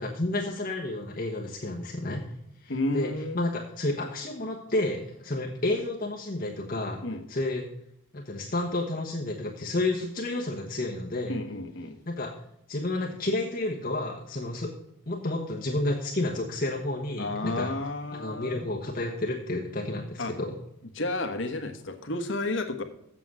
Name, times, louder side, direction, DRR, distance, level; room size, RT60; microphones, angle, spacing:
voice 1, 0.0-2.2 2.6-7.7 8.1-11.4 12.1-12.3 12.7-14.7 15.1-17.7 18.1-20.6, left 2 dB, 40° left, -2 dB, 1.2 m, -31 dB
voice 2, 2.7-3.4 7.0-7.2 11.3-12.0 17.2-18.7 20.2-20.3 20.9-22.8, left 2 dB, 60° left, 6 dB, 1.3 m, -31 dB
7.6 x 7.5 x 6.2 m, 0.78 s
head